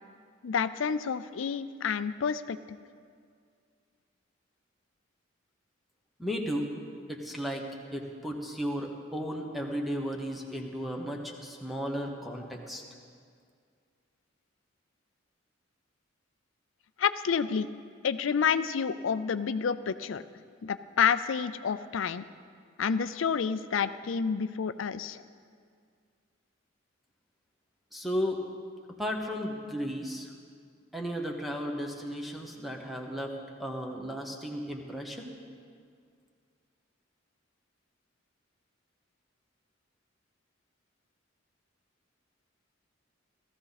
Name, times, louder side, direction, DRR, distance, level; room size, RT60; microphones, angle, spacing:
voice 1, 0.4-2.6 17.0-17.7 18.0-20.2 20.6-22.2 22.8-25.2, left 6 dB, 90° left, 13 dB, 0.5 m, -29 dB
voice 2, 6.2-6.7 7.1-12.8 27.9-28.4 29.0-30.3 30.9-33.3 33.6-35.4, equal, ahead, 1 dB, 1.2 m, -34 dB
16.5 x 14.0 x 4.1 m, 2.2 s
head